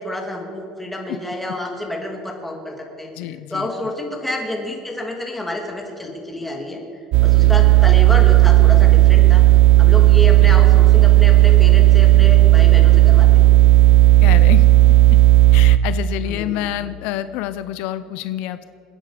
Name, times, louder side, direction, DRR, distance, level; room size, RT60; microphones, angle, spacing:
voice 1, 0.0-6.8 7.2-9.4 9.8-13.3 16.2-16.7, left 1 dB, 5° left, 1 dB, 2.5 m, -29 dB
voice 2, 3.2-3.7 7.4-7.7 10.4-10.6 14.2-14.6 15.5-18.6, left 13 dB, 75° left, 13 dB, 0.5 m, -28 dB
sound 1, 7.1-15.8, right 16 dB, 60° right, 0.5 m, -11 dB
28.5 x 9.8 x 5.1 m, 2.6 s
cardioid pair, 140°, 2 cm